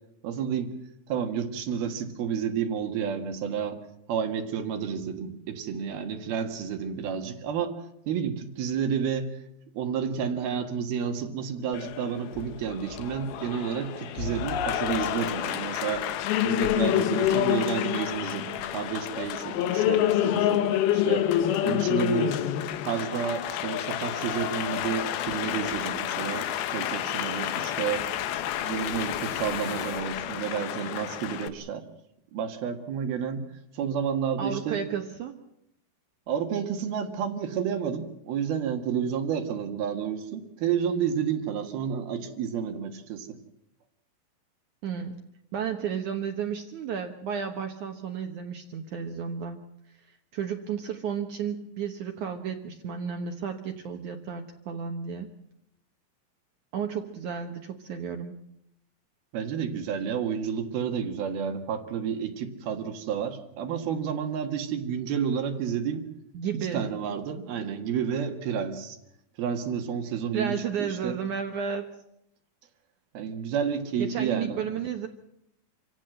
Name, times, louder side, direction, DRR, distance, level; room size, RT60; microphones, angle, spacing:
voice 1, 0.2-0.7 1.1-3.8 4.1-7.8 8.1-9.4 9.8-16.1 16.4-21.3 21.6-22.4 22.9-28.0 28.6-31.9 32.3-33.5 33.7-34.8 36.3-43.4 59.3-66.1 66.7-69.0 69.4-71.2 73.2-74.6, right 7 dB, 80° right, 5 dB, 3.6 m, -30 dB
Applause, 11.7-31.5, left 11 dB, 80° left, 2.9 m, -28 dB
sound 1, 24.2-30.0, left 7 dB, 55° left, 2.4 m, -44 dB
voice 2, 34.4-35.4 44.8-45.2 45.5-49.6 49.9-55.3 56.7-58.4 66.3-66.8 70.3-71.9 74.0-75.1, right 7 dB, 65° right, 5 dB, 2.4 m, -33 dB
26.5 x 16.0 x 7.8 m, 0.79 s
omnidirectional pair, 4.3 m